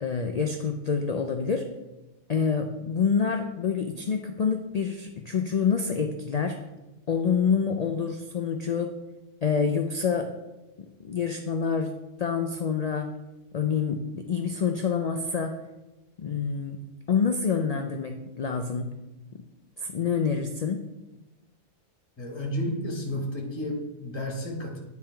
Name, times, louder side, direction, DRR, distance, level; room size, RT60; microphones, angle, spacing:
voice 1, 0.0-1.7 2.3-6.6 7.1-8.9 9.4-10.3 11.0-11.9 12.2-13.1 13.5-15.5 16.2-16.8 17.1-18.9 19.8-20.8, left 6 dB, 80° left, 5 dB, 0.3 m, -27 dB
voice 2, 22.2-24.8, equal, 20° left, 1 dB, 1.3 m, -32 dB
9.4 x 3.5 x 4.4 m, 1.0 s
omnidirectional pair, 1.3 m